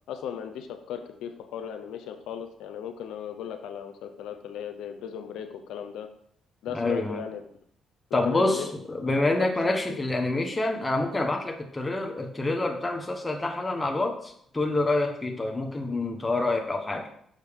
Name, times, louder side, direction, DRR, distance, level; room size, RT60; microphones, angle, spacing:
voice 1, 0.1-6.1 6.6-7.4 8.1-8.7 9.0-9.5 9.9-10.3, left 8 dB, 85° left, 7 dB, 0.7 m, -37 dB
voice 2, 6.7-7.2 8.1-17.1, left 2 dB, 15° left, 4 dB, 1.1 m, -27 dB
6.5 x 6.2 x 3.6 m, 0.66 s
cardioid pair, 90°, 0 cm